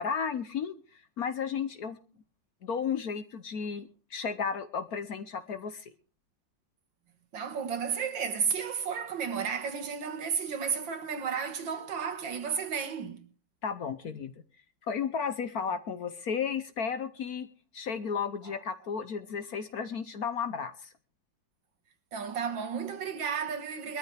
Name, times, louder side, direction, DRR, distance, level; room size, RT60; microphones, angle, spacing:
voice 1, 0.0-2.0 2.6-5.9 13.6-14.3 14.9-17.5 17.7-20.9, left 6 dB, 55° left, 1.2 m, -33 dB
voice 2, 7.3-13.2 22.1-24.0, right 6 dB, 70° right, 2.3 m, -33 dB
22.0 x 13.5 x 3.4 m
omnidirectional pair, 2.1 m